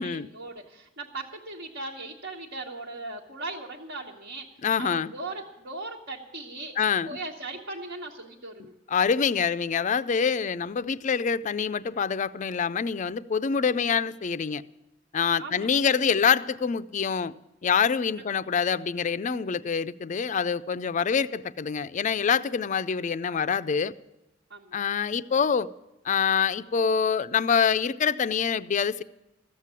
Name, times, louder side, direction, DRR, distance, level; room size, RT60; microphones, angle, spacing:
voice 1, 0.0-4.5 4.8-6.7 7.1-8.7 15.4-15.7 18.3-18.4 24.5-24.8, right 2 dB, 65° right, 1.3 m, -38 dB
voice 2, 4.6-5.1 6.8-7.2 8.9-14.6 15.1-17.3 17.6-23.9 24.7-25.7 26.0-29.0, left 6 dB, 40° left, 0.4 m, -25 dB
14.5 x 7.5 x 9.6 m
head